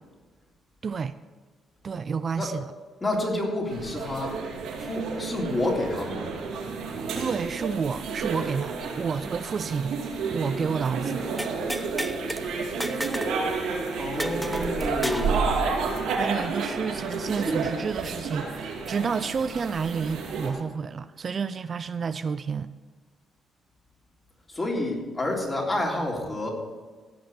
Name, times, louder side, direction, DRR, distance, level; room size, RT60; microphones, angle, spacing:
voice 1, 0.8-1.1 1.8-2.6 7.2-10.0 10.3-11.3 16.1-22.7, right 5 dB, 45° right, 13 dB, 0.4 m, -30 dB
voice 2, 3.0-4.4 4.8-6.3 14.0-15.7 24.5-26.5, left 1 dB, 25° left, -2 dB, 3.5 m, -29 dB
sound 1, 3.7-20.5, right 4 dB, 85° right, 2.5 m, -31 dB
sound 2, 11.4-12.4 12.8-13.4 13.6-13.7 14.2-15.3, equal, ahead, 0.9 m, -32 dB
16.0 x 5.9 x 7.1 m, 1.4 s
cardioid pair, 90°, 0 cm